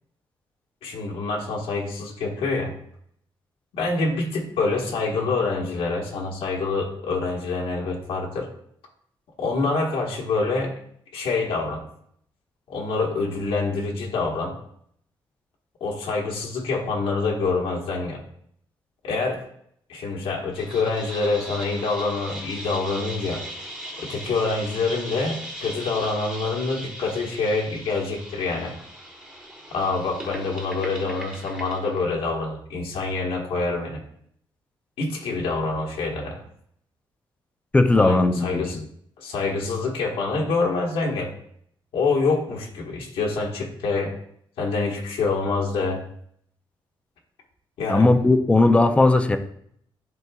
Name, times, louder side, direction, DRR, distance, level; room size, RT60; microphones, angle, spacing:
voice 1, 0.8-2.7 3.7-8.5 9.4-10.7 11.1-11.8 12.7-14.5 15.8-18.2 19.0-19.4 19.9-23.4 24.0-28.7 29.7-34.0 35.0-36.4 38.0-38.8 39.2-41.3 41.9-44.2 44.6-46.0 47.8-48.1, left 3 dB, 85° left, -1 dB, 1.4 m, -26 dB
sound 1, 20.5-32.0, right 1 dB, 10° right, 1.2 m, -38 dB
voice 2, 37.7-38.8 47.9-49.4, left 2 dB, 15° left, 7 dB, 0.4 m, -18 dB
10.5 x 3.8 x 2.3 m, 0.67 s
cardioid pair, 170°, 9 cm